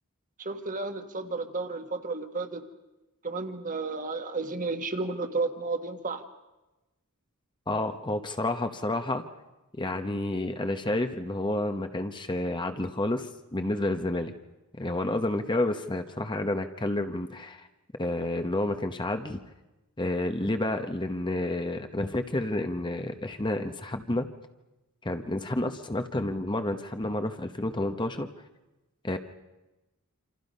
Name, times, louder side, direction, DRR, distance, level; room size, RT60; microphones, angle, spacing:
voice 1, 0.4-2.7 3.2-6.2, right 3 dB, 35° right, 6 dB, 1.6 m, -32 dB
voice 2, 7.7-9.2 9.8-14.3 14.8-17.7 18.0-19.4 20.0-24.3 25.0-28.3 29.0-29.2, left 1 dB, 20° left, 7 dB, 1.0 m, -30 dB
27.5 x 26.5 x 5.5 m, 1.1 s
head